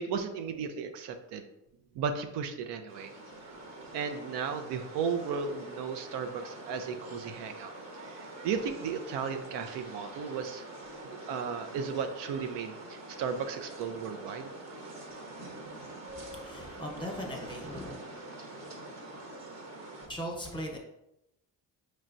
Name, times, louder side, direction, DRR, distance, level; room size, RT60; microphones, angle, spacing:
voice 1, 0.0-1.5 1.9-3.1 3.9-10.6 11.0-14.5, right 6 dB, 75° right, 7 dB, 0.6 m, -35 dB
sound 1, 2.9-20.1, right 2 dB, 40° right, 1.0 m, -45 dB
voice 2, 16.1-17.9 20.1-20.8, equal, 10° left, 0 dB, 1.1 m, -39 dB
4.4 x 3.2 x 2.6 m, 0.86 s
supercardioid pair, 75°, 42 cm